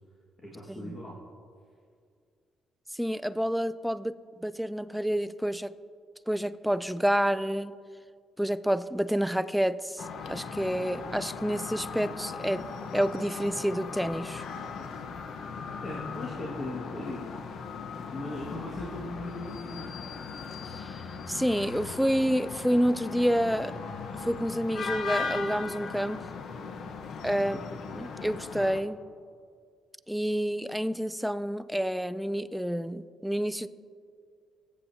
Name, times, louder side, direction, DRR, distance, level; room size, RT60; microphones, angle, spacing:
voice 1, 0.4-1.2 15.8-17.3 18.1-19.9 27.4-27.6, left 1 dB, 30° left, -3 dB, 1.7 m, -38 dB
voice 2, 2.9-5.7 6.3-7.7 8.4-12.7 12.9-14.4 20.7-20.9 21.3-23.8 24.2-26.2 27.2-27.6 27.9-29.0 30.1-33.7, equal, ahead, 14 dB, 0.3 m, -29 dB
sound 1, 10.0-28.8, left 5 dB, 65° left, 0.8 m, -38 dB
18.5 x 8.4 x 2.7 m, 2.2 s
cardioid pair, 90°, 0 cm